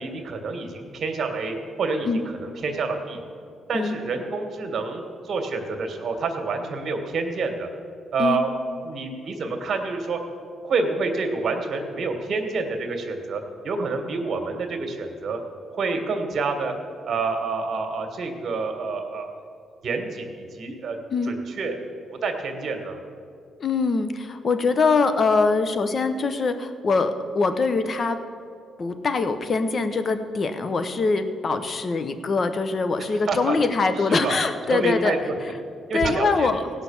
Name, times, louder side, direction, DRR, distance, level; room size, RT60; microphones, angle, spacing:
voice 1, 0.0-3.2 3.7-7.7 8.1-8.5 8.8-10.2 10.6-15.4 15.7-16.7 17.0-19.3 19.8-21.0 21.2-21.8 22.2-23.0 33.0-33.6 34.0-34.4 34.7-35.3 35.9-36.6, right 4 dB, 55° right, 4 dB, 1.7 m, -28 dB
voice 2, 23.6-28.2 28.8-35.1 35.9-36.6, left 4 dB, 45° left, 9 dB, 0.9 m, -23 dB
16.5 x 5.7 x 7.1 m, 2.3 s
cardioid pair, 90°, 0 cm